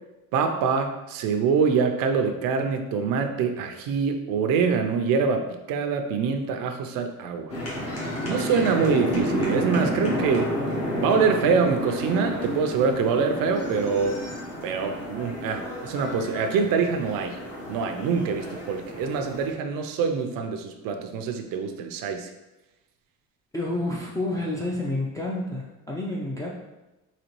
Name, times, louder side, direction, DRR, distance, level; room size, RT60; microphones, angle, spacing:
voice 1, 0.3-7.5 8.3-10.5 10.9-14.2 14.6-17.4 17.7-22.3, right 5 dB, 85° right, 6 dB, 0.5 m, -25 dB
sound 1, 7.5-19.5, equal, 45° left, 1.3 m, -30 dB
voice 2, 23.5-26.5, left 2 dB, 10° left, -5 dB, 0.4 m, -29 dB
4.1 x 2.8 x 3.0 m, 1.0 s
cardioid pair, 135°, 33 cm